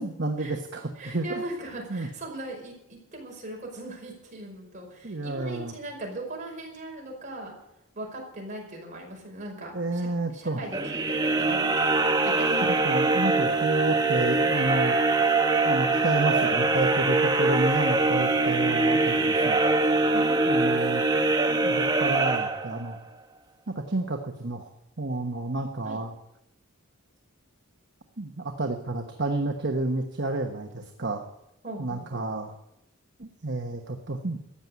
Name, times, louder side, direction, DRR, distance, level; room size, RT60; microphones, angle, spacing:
voice 1, 0.0-1.4 1.9-2.1 5.0-5.7 9.7-10.6 12.8-15.0 15.6-19.6 20.5-21.0 21.5-23.0 23.7-24.7 25.0-26.1 28.2-31.2 31.8-32.5 33.2-34.4, right 2 dB, 50° right, 4 dB, 1.2 m, -30 dB
voice 2, 1.0-7.5 7.9-12.8 25.8-26.0 31.6-32.3, right 1 dB, 35° right, 0 dB, 5.2 m, -39 dB
sound 1, 10.7-23.0, right 3 dB, 20° right, 1.0 m, -23 dB
14.0 x 9.3 x 8.5 m, 0.83 s
head